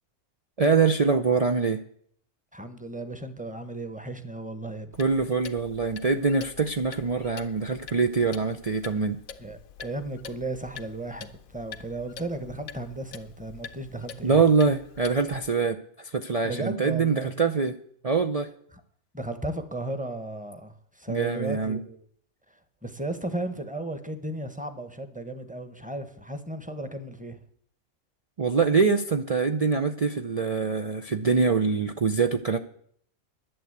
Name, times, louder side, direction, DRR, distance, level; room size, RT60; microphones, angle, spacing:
voice 1, 0.6-1.8 5.0-9.2 14.2-17.7 18.0-18.5 21.1-21.8 28.4-32.6, right 4 dB, 50° right, 6 dB, 0.4 m, -24 dB
voice 2, 2.5-4.9 9.4-14.4 16.4-17.3 19.1-22.1 22.8-27.4, right 2 dB, 5° right, 10 dB, 1.0 m, -35 dB
Clock, 4.9-15.5, left 7 dB, 75° left, 1.2 m, -46 dB
11.0 x 9.2 x 8.1 m, 0.63 s
omnidirectional pair, 1.5 m